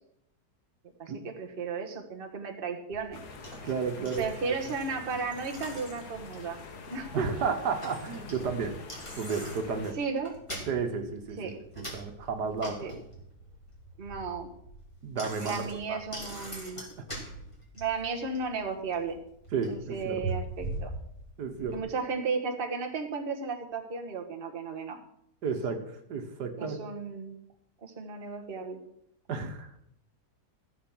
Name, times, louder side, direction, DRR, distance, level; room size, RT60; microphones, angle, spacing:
voice 1, 1.0-3.2 4.2-6.6 6.9-7.3 9.9-10.3 11.4-11.6 12.8-12.9 14.0-14.5 15.4-16.8 17.7-19.2 19.7-20.9 21.7-25.0 26.6-27.4 27.8-28.8, right 4 dB, 35° right, 3 dB, 1.5 m, -34 dB
Bicycle, 2.9-21.8, right 1 dB, 15° left, 3.1 m, -43 dB
sound 1, 3.1-9.9, left 4 dB, 70° left, 1.9 m, -46 dB
voice 2, 3.6-4.2 7.1-8.8 9.2-10.0 10.7-12.9 15.0-15.6 15.9-16.0 16.8-16.9 19.5-20.2 21.4-21.8 25.4-26.8 29.3-29.8, right 5 dB, 80° right, 5 dB, 1.8 m, -32 dB
14.0 x 7.4 x 6.1 m, 0.74 s
omnidirectional pair, 1.7 m